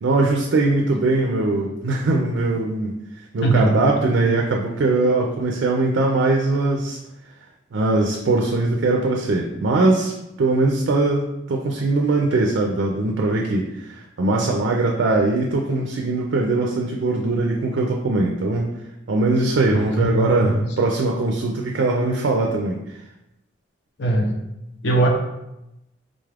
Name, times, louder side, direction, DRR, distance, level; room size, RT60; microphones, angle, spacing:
voice 1, 0.0-2.9 3.3-7.0 7.7-10.1 10.4-18.7 19.1-22.8, right 2 dB, 75° right, 1 dB, 0.4 m, -21 dB
voice 2, 3.4-3.8 19.7-20.6 24.0-24.3 24.8-25.1, right 2 dB, 70° left, 1 dB, 0.7 m, -20 dB
3.8 x 2.4 x 3.3 m, 0.89 s
head